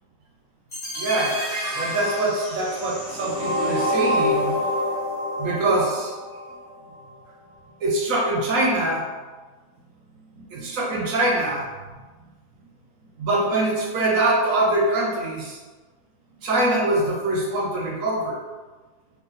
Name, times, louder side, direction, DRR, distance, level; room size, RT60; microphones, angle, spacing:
sound 1, 0.7-6.7, left 1 dB, 45° left, 1.3 m, -27 dB
voice 1, 1.0-1.4 1.8-4.7 5.4-6.1 7.8-9.1 10.3-11.7 13.2-15.6 16.4-18.4, right 2 dB, 65° right, -2 dB, 0.9 m, -23 dB
3.1 x 2.5 x 3.9 m, 1.3 s
omnidirectional pair, 1.8 m